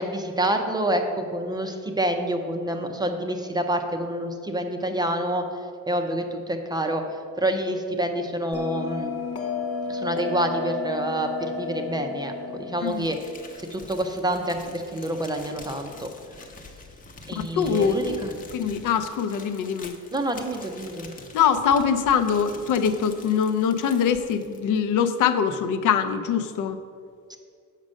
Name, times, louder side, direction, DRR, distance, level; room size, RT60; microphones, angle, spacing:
voice 1, 0.0-5.5 5.9-9.2 9.9-16.1 17.3-18.3 20.1-21.1 27.3-27.4, right 1 dB, 15° right, 5 dB, 0.4 m, -27 dB
Bell, 8.5-13.6, left 4 dB, 50° left, 1.0 m, -32 dB
Crumpling crinkling, 12.8-24.9, left 3 dB, 25° left, 0.7 m, -45 dB
voice 2, 17.4-18.2 18.5-19.9 21.3-26.8, left 7 dB, 75° left, 10 dB, 0.6 m, -23 dB
7.4 x 5.2 x 6.3 m, 2.3 s
cardioid pair, 160°, 31 cm